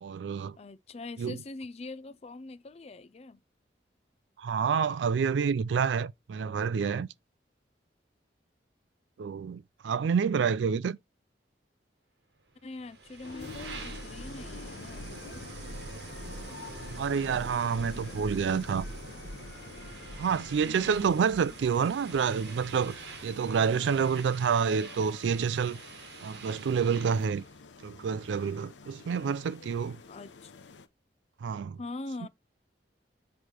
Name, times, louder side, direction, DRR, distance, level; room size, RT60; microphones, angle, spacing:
voice 1, 0.0-0.6 1.2-1.4 4.4-7.1 9.2-11.0 17.0-18.8 20.2-25.8 26.2-27.4 27.8-30.0 31.4-31.8, right 6 dB, 90° right, 0.4 m, -28 dB
voice 2, 0.6-3.4 12.6-15.4 20.6-21.2 30.1-30.5 31.8-32.3, left 2 dB, 35° left, 0.4 m, -43 dB
sound 1, 12.8-27.4, right 3 dB, 70° right, 1.1 m, -44 dB
sound 2, 13.2-30.9, left 4 dB, 85° left, 0.7 m, -48 dB
8.2 x 3.2 x 4.4 m
head